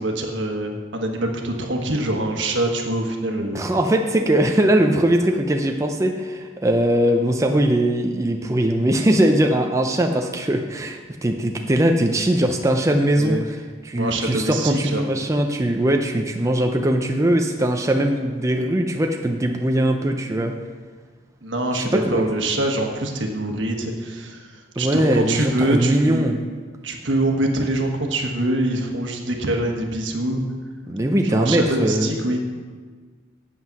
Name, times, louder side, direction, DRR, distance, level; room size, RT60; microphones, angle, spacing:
voice 1, 0.0-3.6 13.2-13.4 14.0-15.0 21.4-26.4 26.8-30.4 31.3-32.4, right 1 dB, 75° right, 2 dB, 1.3 m, -24 dB
voice 2, 3.5-13.6 13.8-20.6 21.7-22.2 24.8-26.4 30.9-32.2, right 1 dB, 15° right, 3 dB, 0.5 m, -20 dB
8.5 x 7.6 x 5.9 m, 1.5 s
head